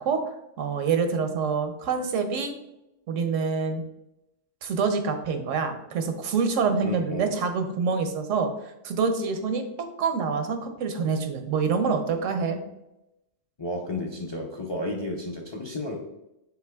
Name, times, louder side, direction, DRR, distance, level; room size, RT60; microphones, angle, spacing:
voice 1, 0.0-2.5 3.1-3.8 4.6-9.6 10.0-12.6, right 5 dB, 90° right, 6 dB, 1.0 m, -26 dB
voice 2, 6.8-7.3 13.6-16.0, left 1 dB, 40° left, 1 dB, 0.4 m, -32 dB
5.7 x 3.8 x 2.3 m, 0.89 s
omnidirectional pair, 1.3 m